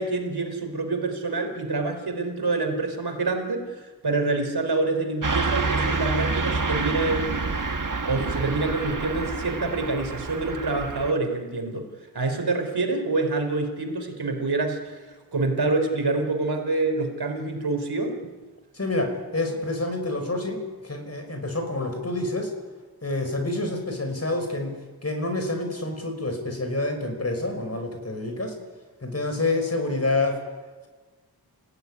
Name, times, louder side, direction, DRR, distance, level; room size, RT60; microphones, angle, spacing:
voice 1, 0.0-7.3 8.0-11.9 12.1-15.0 15.3-18.2, right 3 dB, 70° right, 4 dB, 4.4 m, -26 dB
Car passing by / Truck, 5.2-11.1, right 3 dB, 50° right, 1.6 m, -28 dB
voice 2, 18.7-22.5 23.0-24.8 25.0-28.5 29.0-30.4, left 2 dB, 40° left, 5 dB, 5.6 m, -28 dB
28.0 x 16.5 x 9.9 m, 1.3 s
wide cardioid pair, 85°, 39 cm